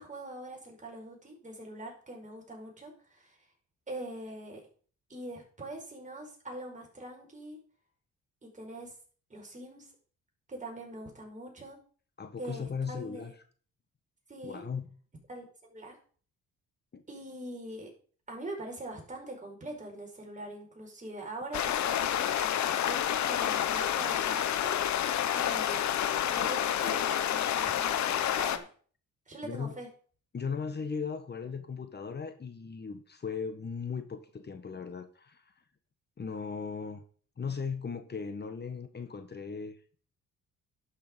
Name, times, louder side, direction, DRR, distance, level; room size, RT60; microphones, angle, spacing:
voice 1, 0.0-3.4 3.9-4.6 5.1-7.6 8.4-8.9 9.3-9.9 10.5-11.8 12.4-13.3 14.3-14.7 15.3-16.0 17.1-17.9 18.3-25.9 26.3-28.7 29.3-29.9, right 1 dB, 25° right, 1 dB, 5.3 m, -43 dB
voice 2, 12.2-13.3 14.4-14.8 16.9-17.0 29.4-29.7 30.3-35.4 36.2-37.0 37.4-39.7, left 5 dB, 35° left, 8 dB, 1.5 m, -37 dB
sound 1, 21.5-28.6, left 10 dB, 70° left, 1.1 m, -29 dB
11.0 x 6.8 x 5.3 m, 0.43 s
cardioid pair, 90°, 30 cm